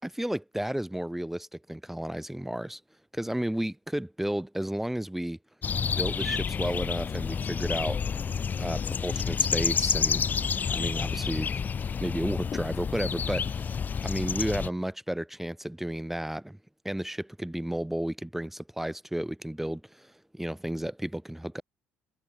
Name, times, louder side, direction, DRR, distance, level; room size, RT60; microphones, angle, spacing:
voice 1, 0.0-2.8 3.1-5.4 5.8-8.0 8.6-11.6 12.0-13.7 14.0-16.6 16.8-21.6, right 1 dB, 5° right, 1.1 m, -33 dB
sound 1, 5.6-14.7, left 6 dB, 35° left, 0.6 m, -29 dB
figure-of-eight pair, 55°, 5 cm